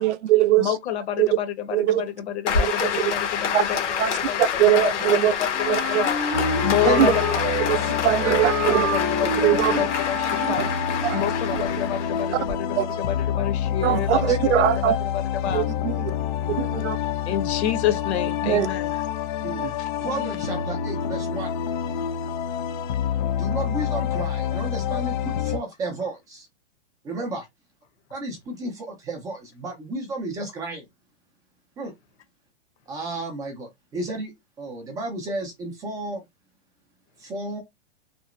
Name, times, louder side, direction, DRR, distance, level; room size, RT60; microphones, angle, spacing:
voice 1, 0.0-0.7 1.2-1.3 1.7-2.0 2.6-2.9 3.5-3.6 4.0-4.1 4.4-5.3 5.7-6.0 7.0-7.1 7.7-7.8 8.0-8.9 9.4-9.9 10.4-10.5 11.0-11.2 12.8-12.9 13.8-15.0 15.5-16.1 16.8-17.0 18.4-18.7 19.4-19.7, right 12 dB, 80° right, 0.5 m, -21 dB
voice 2, 0.6-8.4 8.7-14.3 14.8-15.7 17.2-19.0 19.8-19.9, left 10 dB, 65° left, 0.9 m, -29 dB
Applause, 2.5-12.5, left 7 dB, 90° left, 1.1 m, -28 dB
Wind instrument woodwind instrument, 5.5-11.3, right 2 dB, 30° right, 0.8 m, -29 dB
sound 1, 6.3-25.6, left 9 dB, 45° left, 0.5 m, -27 dB
voice 3, 20.0-21.5 23.3-26.5 27.0-27.5 28.1-30.9 31.8-31.9 32.9-34.3 34.6-36.2 37.2-37.6, right 3 dB, 10° right, 0.4 m, -31 dB
2.9 x 2.0 x 2.4 m
hypercardioid pair, 145°, 35 cm